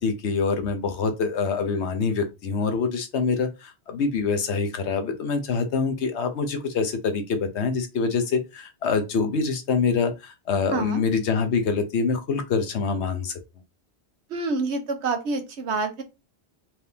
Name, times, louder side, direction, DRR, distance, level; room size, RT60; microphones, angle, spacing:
voice 1, 0.0-13.4, left 5 dB, 90° left, 1.1 m, -25 dB
voice 2, 10.7-11.0 14.3-16.0, right 3 dB, 80° right, 1.2 m, -27 dB
4.4 x 3.4 x 2.8 m
omnidirectional pair, 1.1 m